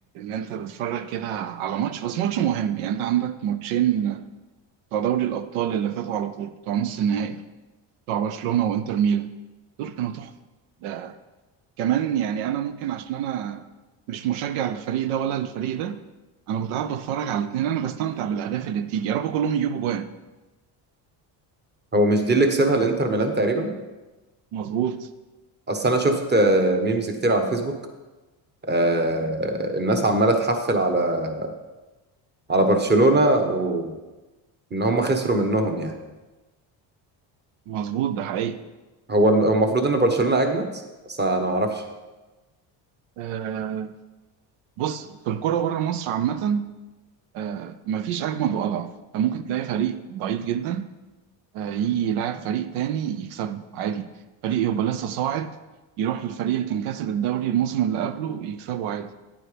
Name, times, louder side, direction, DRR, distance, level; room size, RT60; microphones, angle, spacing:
voice 1, 0.1-4.3 4.9-7.4 8.1-9.3 9.8-10.3 10.8-11.1 11.8-13.6 14.1-16.0 16.5-20.1 24.5-25.1 37.7-38.6 43.2-43.9 44.8-46.6 47.3-50.9 51.5-54.1 54.4-55.5 56.0-59.1, right 9 dB, 85° right, 11 dB, 0.6 m, -26 dB
voice 2, 21.9-23.7 25.7-27.8 28.7-31.5 32.5-33.9 34.7-35.9 39.1-40.7 41.1-41.8, right 2 dB, 20° right, 5 dB, 1.2 m, -21 dB
10.5 x 8.8 x 3.4 m, 1.1 s
cardioid pair, 110°, 48 cm